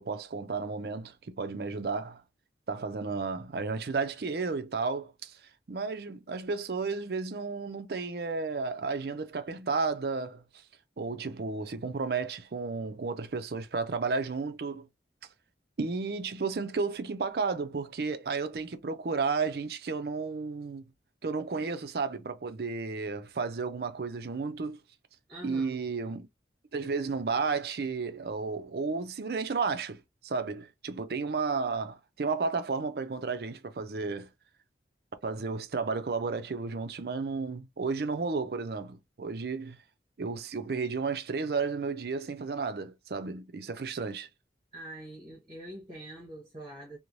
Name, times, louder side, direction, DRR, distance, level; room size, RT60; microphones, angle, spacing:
voice 1, 0.0-2.2 2.7-5.4 5.7-10.6 11.0-14.9 15.8-20.8 21.2-24.8 25.4-26.3 26.7-34.3 35.2-39.8 40.2-44.3, right 4 dB, 60° right, 0.5 m, -33 dB
voice 2, 25.3-25.8 44.7-47.0, right 1 dB, 25° right, 1.0 m, -44 dB
3.1 x 2.2 x 2.5 m
head